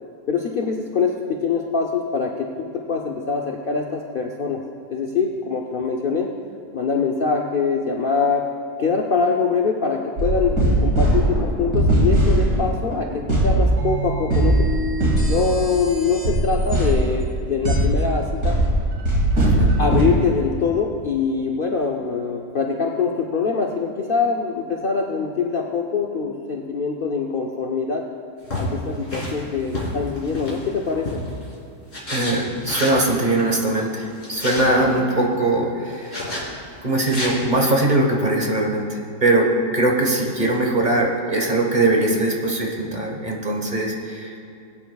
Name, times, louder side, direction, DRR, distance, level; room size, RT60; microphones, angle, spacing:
voice 1, 0.3-4.6 4.9-6.3 6.7-8.5 8.8-14.5 14.8-14.9 15.3-18.6 19.8-28.0 28.6-31.2, left 5 dB, 75° left, 1 dB, 0.5 m, -23 dB
sound 1, 10.2-20.0, right 1 dB, 60° right, 2.8 m, -20 dB
voice 2, 19.3-19.7 32.1-36.2 36.8-44.3, right 2 dB, 30° right, -1 dB, 1.3 m, -21 dB
sound 2, 28.4-31.4 31.9-33.0 34.0-34.7 36.1-36.4 37.0-37.3, left 1 dB, 40° left, 2.9 m, -30 dB
20.0 x 9.3 x 2.3 m, 2.6 s
omnidirectional pair, 1.8 m